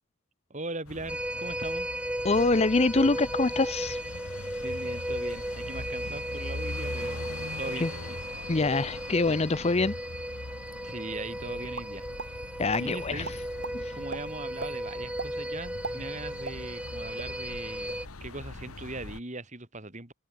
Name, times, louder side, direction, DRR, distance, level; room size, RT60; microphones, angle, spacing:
voice 1, 0.5-1.9 4.6-8.2 10.8-12.1 12.8-13.3 13.9-20.1, right 2 dB, 35° right, 2.8 m, -40 dB
sound 1, 0.9-19.2, left 2 dB, 85° left, 1.8 m, -42 dB
sound 2, 1.1-18.1, right 1 dB, 5° right, 4.7 m, -35 dB
voice 2, 2.2-4.0 7.8-7.9 8.5-9.9 12.6-13.3 13.7-14.0, left 3 dB, 30° left, 0.6 m, -25 dB
sound 3, 11.7-12.3 12.7-12.8 13.2-13.7 14.1-14.2 14.6-14.7 15.2-15.3 15.7-16.9 17.2-17.3 17.7-18.0, right 4 dB, 55° right, 1.9 m, -37 dB
head